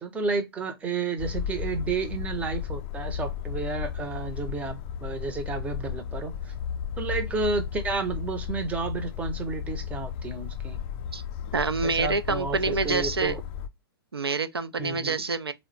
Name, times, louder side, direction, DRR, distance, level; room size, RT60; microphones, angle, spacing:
voice 1, 0.0-6.5 7.0-10.8 11.8-13.4 14.8-15.2, right 4 dB, 10° right, 0.6 m, -31 dB
sound 1, 1.2-13.7, left 8 dB, 30° left, 0.3 m, -34 dB
voice 2, 11.5-13.4 14.1-15.5, right 4 dB, 80° right, 0.5 m, -27 dB
3.7 x 2.1 x 4.4 m
figure-of-eight pair, 110°, 13 cm